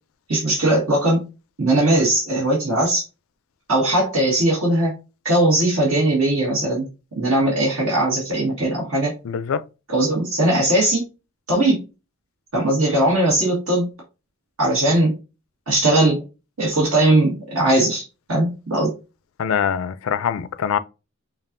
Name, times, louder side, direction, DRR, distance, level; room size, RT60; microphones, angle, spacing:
voice 1, 0.3-1.2 1.6-3.0 3.7-4.9 5.2-6.8 7.2-9.1 9.9-11.1 11.5-11.8 12.5-13.9 14.6-15.1 15.7-16.2 16.6-18.0 18.3-18.9, right 1 dB, 70° right, 1.5 m, -19 dB
voice 2, 9.2-9.6 19.4-20.8, left 7 dB, 70° left, 0.3 m, -23 dB
5.2 x 2.4 x 2.5 m
head